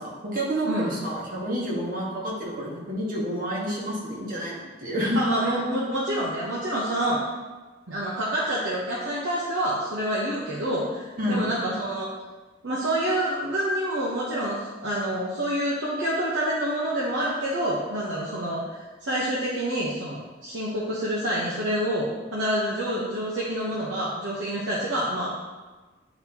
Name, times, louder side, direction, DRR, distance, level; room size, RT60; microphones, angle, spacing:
voice 1, 0.0-5.2 11.2-11.4, equal, 45° right, -5 dB, 1.5 m, -29 dB
voice 2, 5.2-7.2 7.9-12.1 12.6-25.3, right 1 dB, 80° right, -6 dB, 0.9 m, -27 dB
8.7 x 4.1 x 2.9 m, 1.3 s
head